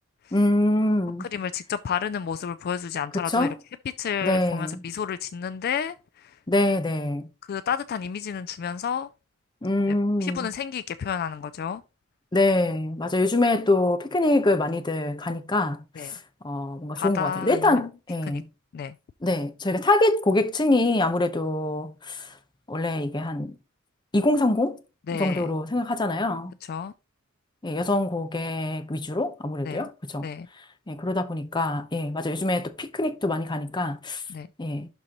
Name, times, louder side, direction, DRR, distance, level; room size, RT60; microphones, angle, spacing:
voice 1, 0.3-1.3 3.3-3.6 4.2-4.8 6.5-7.3 9.6-10.5 12.3-16.2 16.4-18.5 19.2-22.3 22.7-23.6 24.1-24.8 25.1-26.6 27.6-30.3 30.9-34.2 34.6-34.9, left 2 dB, 20° left, 0.7 m, -24 dB
voice 2, 1.2-3.5 4.0-6.4 7.5-9.1 9.9-10.0 10.2-11.8 16.0-16.2 17.0-17.9 18.3-18.4 18.7-19.0 25.1-25.5 26.7-26.9 29.6-29.9 30.2-30.5 34.3-34.5, left 7 dB, 50° left, 0.3 m, -31 dB
11.5 x 4.1 x 3.0 m
head